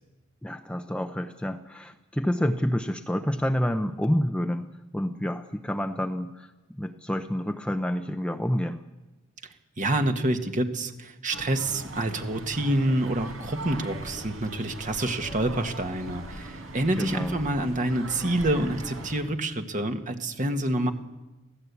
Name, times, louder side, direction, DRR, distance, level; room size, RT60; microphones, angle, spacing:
voice 1, 0.4-4.7 4.9-8.8 17.0-17.4, equal, 5° left, 6 dB, 0.7 m, -28 dB
voice 2, 9.8-20.9, right 1 dB, 40° right, 6 dB, 1.6 m, -27 dB
sound 1, 11.3-19.2, right 1 dB, 80° right, 4.3 m, -40 dB
23.0 x 15.5 x 8.3 m, 1.1 s
head